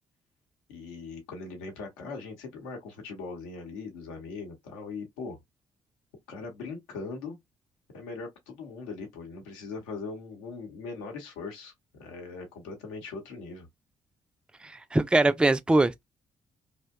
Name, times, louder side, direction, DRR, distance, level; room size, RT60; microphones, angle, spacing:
voice 1, 0.7-5.4 6.3-7.4 7.9-11.7 12.0-13.7, left 4 dB, 80° left, 0.8 m, -40 dB
voice 2, 14.6-16.0, right 2 dB, 5° right, 0.3 m, -23 dB
2.6 x 2.1 x 2.2 m
hypercardioid pair, 45°, 16 cm